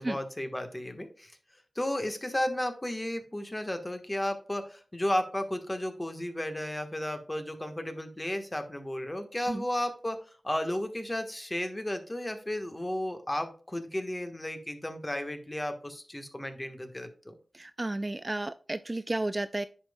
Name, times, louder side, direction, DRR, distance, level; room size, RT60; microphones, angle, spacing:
voice 1, 0.0-1.3 1.7-17.3, left 1 dB, 20° left, 6 dB, 1.3 m, -33 dB
voice 2, 17.5-19.7, right 2 dB, 30° right, 12 dB, 0.3 m, -32 dB
10.0 x 5.3 x 2.2 m, 0.40 s
wide cardioid pair, 70°, 0 cm